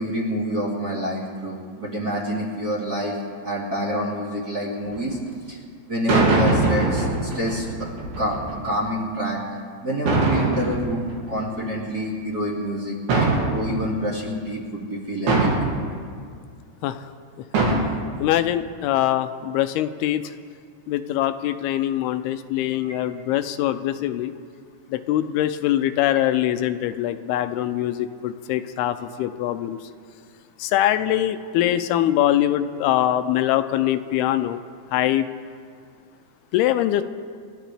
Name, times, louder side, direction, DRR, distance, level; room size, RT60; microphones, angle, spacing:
voice 1, 0.0-3.2 3.4-5.2 5.5-5.6 5.9-7.7 8.2-8.3 8.6-9.4 9.8-13.0 13.4-15.5, equal, 30° right, -6 dB, 2.4 m, -27 dB
sound 1, 4.9-5.1 6.1-8.7 10.1-11.8 13.1-14.0 15.3-16.0 17.5-17.8, right 3 dB, 70° right, 4.2 m, -22 dB
voice 2, 18.2-20.2 20.9-24.3 24.9-29.8 30.6-34.6 34.9-35.3 36.5-37.0, left 12 dB, 85° left, 10 dB, 2.5 m, -23 dB
28.5 x 13.5 x 3.4 m, 2.1 s
omnidirectional pair, 4.5 m